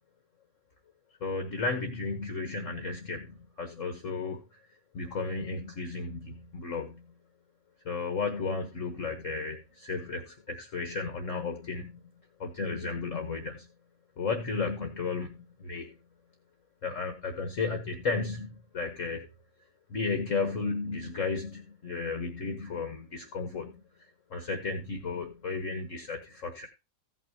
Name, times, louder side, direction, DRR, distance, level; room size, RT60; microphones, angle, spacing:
voice 1, 1.2-4.4 4.9-7.0 7.8-11.9 12.4-13.7 14.2-15.9 16.8-19.3 19.9-23.8 24.3-26.7, left 4 dB, 45° left, 5 dB, 1.5 m, -34 dB
16.0 x 6.0 x 3.0 m, 0.26 s
omnidirectional pair, 2.0 m